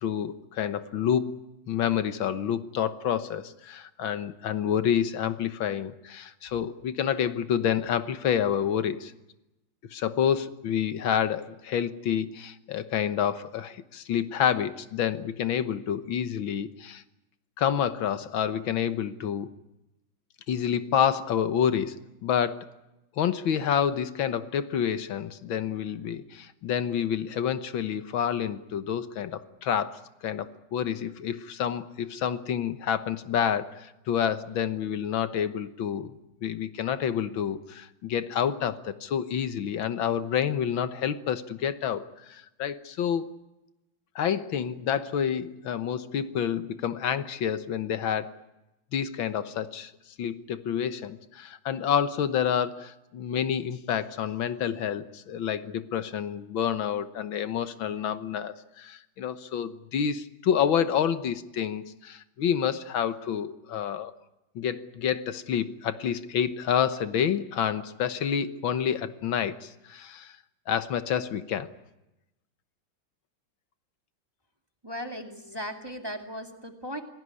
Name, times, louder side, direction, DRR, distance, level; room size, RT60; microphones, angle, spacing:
voice 1, 0.0-9.1 9.9-17.0 17.6-19.5 20.5-22.7 23.2-36.1 36.4-43.3 44.2-48.3 48.9-49.9 50.2-64.1 64.6-70.3 70.7-71.7, left 8 dB, 75° left, 12 dB, 1.9 m, -28 dB
voice 2, 74.8-77.0, equal, 10° right, 5 dB, 2.2 m, -37 dB
26.5 x 18.0 x 9.8 m, 0.95 s
omnidirectional pair, 2.2 m